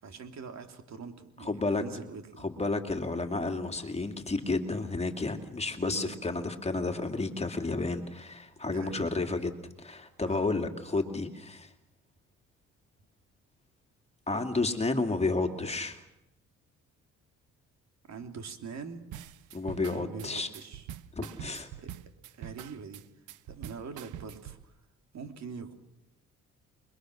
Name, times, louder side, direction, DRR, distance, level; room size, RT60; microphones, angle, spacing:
voice 1, 0.0-2.5 5.8-6.5 8.7-9.0 10.2-10.5 18.1-19.1 19.9-20.9 21.8-21.9 22.4-23.0 23.5-24.6 25.1-25.7, right 5 dB, 60° right, 5 dB, 3.4 m, -43 dB
voice 2, 1.4-1.8 2.4-11.7 14.3-16.0 19.5-20.5 21.2-21.7, left 3 dB, 20° left, 5 dB, 2.5 m, -31 dB
sound 1, 19.1-24.6, right 11 dB, 90° right, 1.0 m, -44 dB
28.5 x 22.5 x 6.4 m, 0.87 s
cardioid pair, 90°, 30 cm